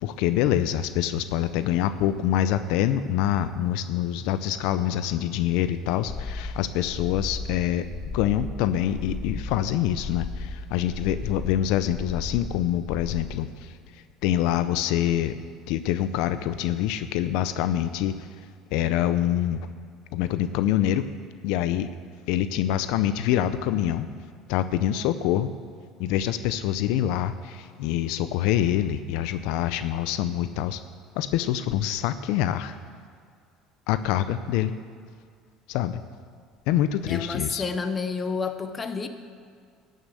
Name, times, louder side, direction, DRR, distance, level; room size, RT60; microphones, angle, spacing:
voice 1, 0.0-7.8 8.1-13.7 14.2-15.3 15.7-18.1 18.7-19.6 20.1-21.1 21.4-21.9 22.3-24.1 24.5-25.5 26.0-30.8 31.2-32.8 33.9-34.8 35.7-36.0 36.7-37.6, left 11 dB, 75° left, 12 dB, 0.5 m, -25 dB
sound 1, 6.0-13.2, left 4 dB, 45° left, 1.5 m, -35 dB
voice 2, 37.1-39.1, left 4 dB, 20° left, 8 dB, 0.8 m, -29 dB
13.0 x 6.6 x 7.6 m, 2.2 s
cardioid pair, 125°, 0 cm